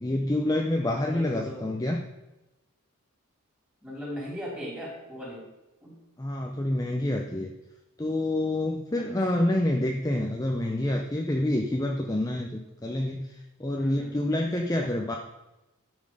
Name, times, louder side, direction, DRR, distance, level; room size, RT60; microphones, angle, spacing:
voice 1, 0.0-2.0 6.2-7.5 8.0-15.2, left 1 dB, 15° left, 2 dB, 0.6 m, -27 dB
voice 2, 0.9-1.7 3.8-5.4 5.8-6.0 9.0-9.1 9.3-9.5 13.8-14.2, equal, 5° right, -5 dB, 3.9 m, -38 dB
11.5 x 6.3 x 4.9 m, 1.0 s
head